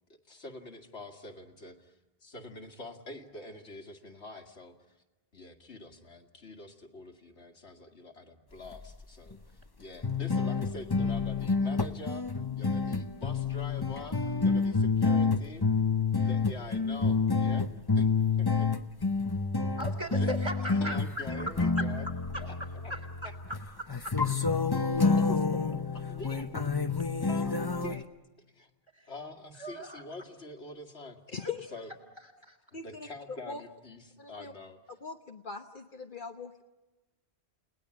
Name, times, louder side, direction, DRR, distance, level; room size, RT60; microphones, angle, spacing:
voice 1, 0.1-5.0 5.3-12.3 12.6-15.6 16.1-17.7 17.9-18.1 18.4-18.7 20.1-20.3 20.8-22.0 22.4-22.6 22.8-22.9 25.1-25.5 25.9-26.7 27.3-28.1 28.5-28.7 29.1-31.2 31.7-31.9 32.8-34.8, left 2 dB, 75° left, 4 dB, 2.4 m, -45 dB
sound 1, 8.7-9.0 9.3-9.4 10.0-28.0, left 4 dB, 20° left, 0.9 m, -29 dB
voice 2, 19.8-21.4 21.8-21.9 22.3-23.3 23.8-24.1 28.9-29.1 29.6-30.0 31.4-31.5 32.4-32.6, equal, 25° right, 5 dB, 3.7 m, -38 dB
voice 3, 31.3-31.7 32.7-33.6 34.2-34.5 35.0-36.6, left 5 dB, 50° left, 5 dB, 1.2 m, -41 dB
30.0 x 19.0 x 9.7 m, 1.1 s
omnidirectional pair, 1.1 m